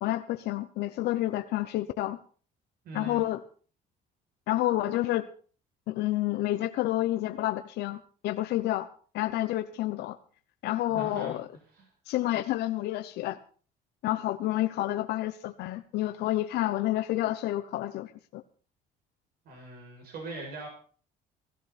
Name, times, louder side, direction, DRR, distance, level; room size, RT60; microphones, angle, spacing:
voice 1, 0.0-2.2 2.9-3.4 4.5-5.3 5.9-8.9 9.1-10.2 10.6-11.5 12.1-13.4 14.0-18.4, left 15 dB, 80° left, 8 dB, 0.9 m, -29 dB
voice 2, 2.8-3.2 10.9-11.4 11.8-11.9 19.5-20.7, right 3 dB, 65° right, 1 dB, 7.1 m, -41 dB
16.5 x 15.5 x 4.3 m, 0.42 s
cardioid pair, 110°, 17 cm